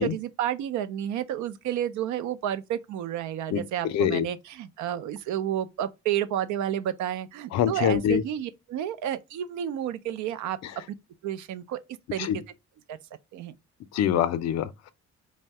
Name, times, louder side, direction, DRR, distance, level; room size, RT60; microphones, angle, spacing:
voice 1, 0.0-10.6 11.2-11.8 12.1-12.4 12.9-13.0 13.3-13.5, right 11 dB, 80° right, 0.5 m, -31 dB
voice 2, 3.5-4.3 7.5-8.2 10.6-10.7 12.2-12.4 13.9-14.9, left 9 dB, 60° left, 0.5 m, -25 dB
2.7 x 2.1 x 3.2 m
cardioid pair, 140°, 29 cm